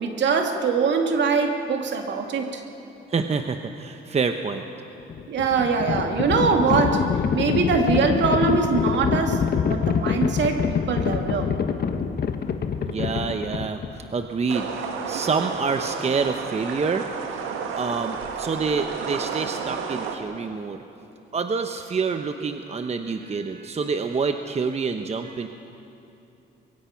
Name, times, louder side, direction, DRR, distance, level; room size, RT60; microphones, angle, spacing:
voice 1, 0.0-2.6 5.3-7.1 7.3-11.5, right 5 dB, 65° right, 3 dB, 2.4 m, -23 dB
voice 2, 3.1-4.6 12.8-13.8 14.1-14.7 15.1-17.1 17.8-20.8 21.3-25.5, right 5 dB, 35° right, 7 dB, 0.9 m, -27 dB
Livestock farm animals working animals, 5.0-14.1, left 6 dB, 50° left, 1.3 m, -25 dB
sound 1, 14.5-20.2, right 6 dB, 90° right, 1.9 m, -31 dB
23.0 x 23.0 x 5.9 m, 2.8 s
cardioid pair, 90°, 20 cm